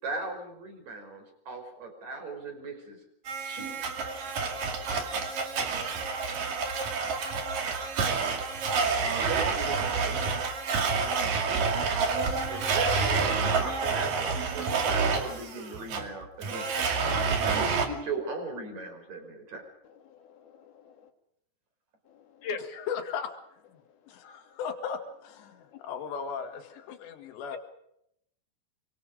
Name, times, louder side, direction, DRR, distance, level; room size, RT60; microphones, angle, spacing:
voice 1, 0.0-3.0 3.4-3.8 9.3-10.5 12.5-14.2 14.5-16.9 17.4-19.7, right 3 dB, 40° right, 5 dB, 6.3 m, -38 dB
Domestic sounds home sounds, 3.3-17.9, right 4 dB, 55° right, 3.8 m, -28 dB
voice 2, 20.1-21.1 22.4-22.6 25.7-25.8, left 5 dB, 65° left, 6 dB, 3.9 m, -40 dB
voice 3, 22.7-23.3 24.1-27.6, left 7 dB, 85° left, 4 dB, 4.3 m, -37 dB
26.5 x 24.5 x 5.2 m, 0.76 s
omnidirectional pair, 4.9 m